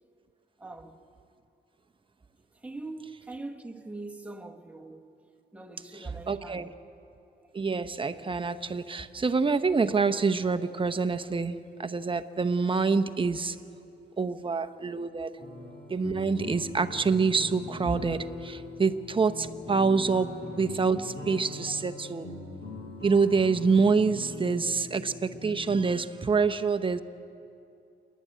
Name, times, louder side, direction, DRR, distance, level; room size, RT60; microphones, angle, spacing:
voice 1, 0.6-1.0 2.6-5.1 5.5-6.7 15.4-15.6 21.0-21.1 21.7-21.8, right 2 dB, 5° right, 1.4 m, -42 dB
voice 2, 6.3-6.7 7.5-13.6 14.2-15.3 15.9-22.3 23.0-27.0, right 4 dB, 25° right, 0.9 m, -26 dB
sound 1, 15.4-25.9, left 2 dB, 60° left, 7.2 m, -41 dB
29.5 x 11.5 x 9.3 m
cardioid pair, 100°, 19 cm